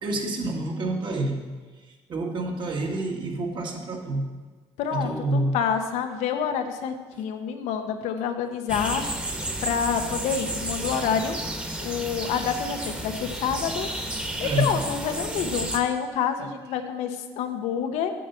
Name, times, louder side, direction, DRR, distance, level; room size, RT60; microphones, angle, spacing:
voice 1, 0.0-1.5 2.1-4.3 4.9-5.6 14.4-14.7 16.4-16.5, right 2 dB, 45° right, 1 dB, 1.6 m, -28 dB
voice 2, 4.8-9.0 9.6-11.4 11.8-13.9 14.4-18.1, left 7 dB, 80° left, 6 dB, 0.9 m, -27 dB
sound 1, 8.7-15.8, right 1 dB, 10° right, 1.3 m, -32 dB
7.4 x 5.6 x 7.0 m, 1.4 s
cardioid pair, 105°, 11 cm